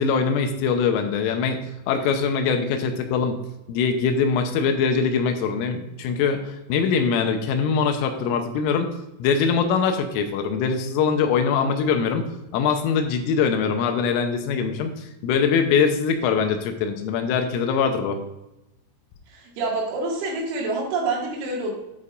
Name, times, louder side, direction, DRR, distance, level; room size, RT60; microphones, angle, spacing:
voice 1, 0.0-1.6 1.9-3.4 3.7-8.9 9.2-12.2 12.5-18.2, left 6 dB, 85° left, 6 dB, 3.5 m, -22 dB
voice 2, 19.3-21.7, right 3 dB, 75° right, -2 dB, 4.4 m, -27 dB
10.5 x 8.3 x 2.5 m, 0.92 s
omnidirectional pair, 5.7 m